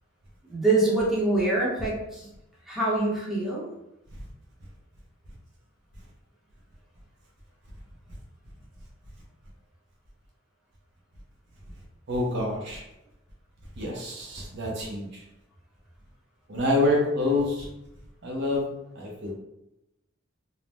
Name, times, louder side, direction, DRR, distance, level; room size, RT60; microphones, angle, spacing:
voice 1, 0.5-2.3 2.7-3.7, right 2 dB, ahead, -7 dB, 0.7 m, -25 dB
voice 2, 12.1-12.8 13.8-15.2 16.5-17.7 18.2-19.3, left 2 dB, 60° right, -2 dB, 0.6 m, -27 dB
2.7 x 2.1 x 3.2 m, 0.90 s
head